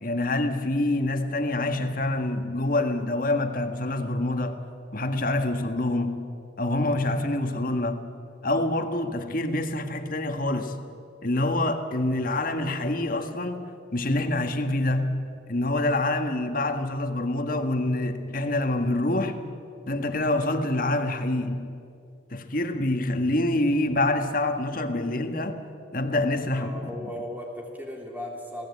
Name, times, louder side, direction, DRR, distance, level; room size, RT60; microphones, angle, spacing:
voice 1, 0.0-4.6 4.9-6.3 6.6-8.1 8.4-10.8 11.2-13.7 13.9-19.4 19.9-21.8 22.3-25.6 25.9-27.0, left 2 dB, 45° left, 1.7 m, -26 dB
voice 2, 26.5-28.7, left 1 dB, 10° right, 3.0 m, -37 dB
27.5 x 18.0 x 8.5 m
head